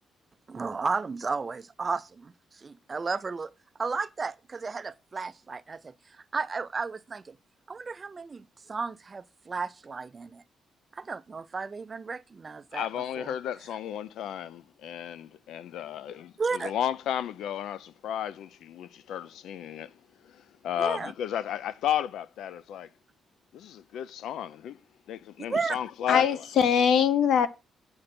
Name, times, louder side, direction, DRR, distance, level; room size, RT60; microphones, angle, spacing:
voice 1, 0.5-3.5 3.8-5.9 6.3-7.3 7.7-10.4 10.9-12.9 13.2-13.3 16.4-16.7 20.8-21.1 25.5-25.8, right 4 dB, 25° right, 0.3 m, -33 dB
voice 2, 12.7-22.9 23.5-24.8 25.1-26.4, left 10 dB, 85° left, 0.4 m, -33 dB
voice 3, 26.1-27.5, left 8 dB, 65° left, 0.9 m, -22 dB
8.6 x 6.6 x 4.3 m
cardioid pair, 180°, 0 cm